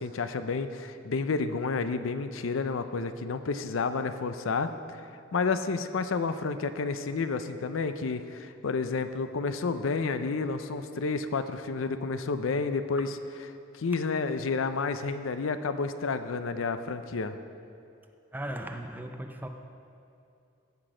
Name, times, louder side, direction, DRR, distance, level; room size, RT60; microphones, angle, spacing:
voice 1, 0.0-13.1 13.7-17.4, left 4 dB, 80° left, 10 dB, 0.5 m, -30 dB
voice 2, 18.3-19.5, right 1 dB, 10° right, 5 dB, 0.5 m, -37 dB
16.0 x 6.0 x 5.0 m, 2.6 s
head